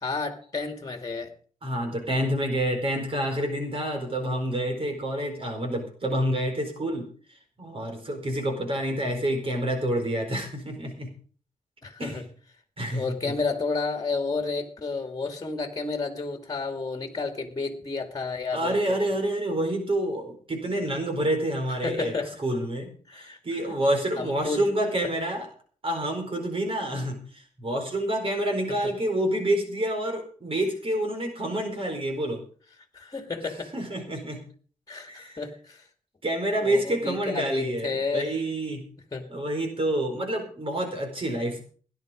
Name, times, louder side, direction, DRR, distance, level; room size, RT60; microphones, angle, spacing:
voice 1, 0.0-1.3 11.8-12.2 12.9-19.0 21.8-22.4 23.1-23.8 24.2-24.7 32.9-33.7 34.9-35.8 36.5-38.4 39.1-39.3 41.5-41.6, left 4 dB, 25° left, 6 dB, 2.3 m, -31 dB
voice 2, 1.6-7.1 7.6-11.1 12.0-12.2 12.8-13.1 18.5-22.1 22.4-25.5 25.8-32.4 33.7-34.4 35.1-35.4 36.2-38.8 39.3-41.6, right 1 dB, 40° right, 3 dB, 4.6 m, -28 dB
16.5 x 11.0 x 5.2 m, 0.44 s
wide cardioid pair, 110°, 14 cm